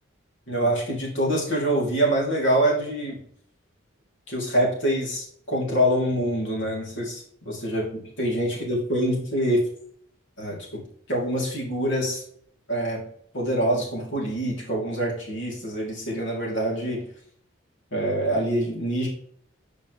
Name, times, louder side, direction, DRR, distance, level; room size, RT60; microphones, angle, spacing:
voice 1, 0.5-3.2 4.3-9.6 10.4-10.8 11.1-12.2 12.7-13.0 13.3-17.0 17.9-19.1, right 1 dB, 70° left, -3 dB, 2.8 m, -25 dB
7.5 x 5.4 x 3.2 m, 0.64 s
head